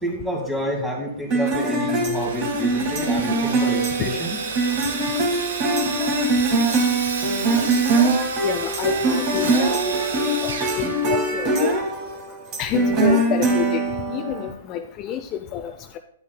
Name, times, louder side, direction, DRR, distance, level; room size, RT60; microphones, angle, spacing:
voice 1, 0.0-4.3, equal, 5° right, -1 dB, 2.0 m, -28 dB
sound 1, 1.3-14.5, right 2 dB, 35° right, 1.5 m, -22 dB
Sawing, 2.1-11.6, right 5 dB, 75° right, 1.1 m, -31 dB
voice 2, 8.4-10.0 10.4-11.8 12.6-13.8 14.1-16.0, left 10 dB, 30° left, 7 dB, 0.4 m, -28 dB
10.5 x 7.1 x 2.2 m, 0.69 s
hypercardioid pair, 130°, 0 cm